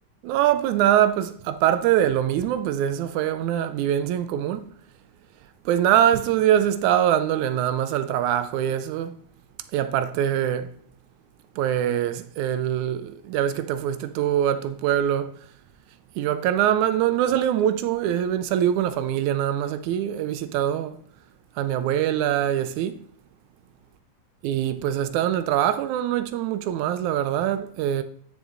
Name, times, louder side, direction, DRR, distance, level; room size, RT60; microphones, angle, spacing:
voice 1, 0.2-4.7 5.7-9.2 9.7-10.7 11.6-15.3 16.2-20.9 21.6-22.9 24.4-28.0, right 11 dB, 85° right, 2.1 m, -23 dB
9.7 x 6.9 x 3.9 m
omnidirectional pair, 3.3 m